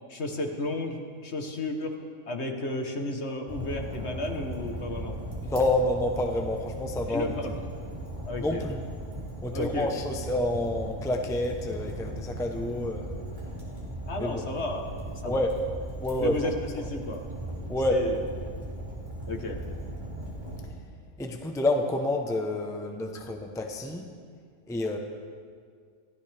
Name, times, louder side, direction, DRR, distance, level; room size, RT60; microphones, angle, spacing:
voice 1, 0.1-2.0 2.3-5.2 7.1-7.6 8.2-8.7 9.5-9.9 14.1-14.9 15.2-15.4 16.2-17.2 17.9-18.2 19.3-19.6 23.1-23.2, left 2 dB, 50° left, 3 dB, 1.5 m, -33 dB
Fire, 3.5-20.7, right 1 dB, 30° right, 3.4 m, -38 dB
voice 2, 5.4-7.3 8.4-8.8 9.4-13.2 14.2-14.4 15.2-15.6 16.0-16.4 16.8-16.9 17.7-18.0 21.2-24.1 24.7-25.0, left 1 dB, 5° left, 3 dB, 0.8 m, -28 dB
23.5 x 15.5 x 3.5 m, 2.1 s
omnidirectional pair, 1.5 m